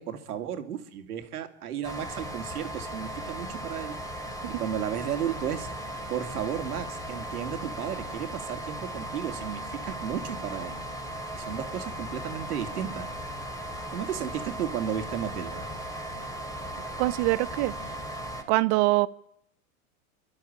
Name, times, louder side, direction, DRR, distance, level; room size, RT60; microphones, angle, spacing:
voice 1, 0.0-4.0 4.5-5.7 6.1-10.8 11.3-13.1 13.9-15.7, right 9 dB, 80° right, 2.5 m, -34 dB
sound 1, 1.8-18.4, right 1 dB, 10° left, 2.8 m, -37 dB
voice 2, 17.0-17.7 18.5-19.1, right 21 dB, 50° right, 1.0 m, -23 dB
29.0 x 12.0 x 8.6 m
hypercardioid pair, 115°, 44 cm